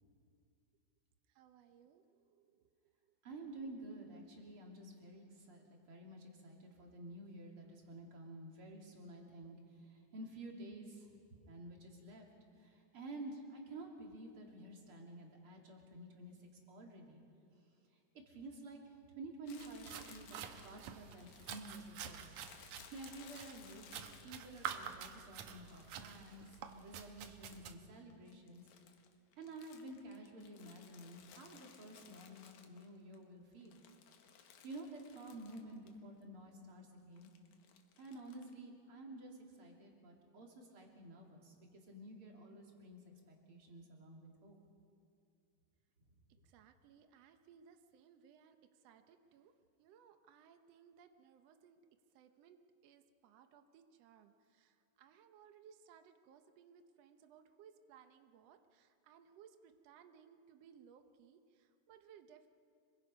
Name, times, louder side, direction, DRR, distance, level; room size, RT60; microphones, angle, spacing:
voice 1, 1.3-3.1 12.0-12.1 46.3-51.8 52.1-62.5, right 8 dB, 90° right, 7 dB, 1.4 m, -63 dB
voice 2, 3.2-11.1 11.5-12.3 12.6-16.4 16.7-17.2 18.3-22.4 22.9-23.8 24.2-28.6 29.4-33.8 34.6-37.3 38.0-43.0 43.3-44.6, right 2 dB, 40° right, 0 dB, 3.2 m, -51 dB
Crumpling crinkling, 19.5-25.2 25.7-27.8 28.1-33.2 33.5-36.0 36.2-36.3 37.2-38.5, left 7 dB, 65° left, 2.4 m, -61 dB
sound 1, 19.6-27.7, right 8 dB, 65° right, 2.1 m, -48 dB
26.0 x 23.0 x 5.4 m, 2.4 s
omnidirectional pair, 4.2 m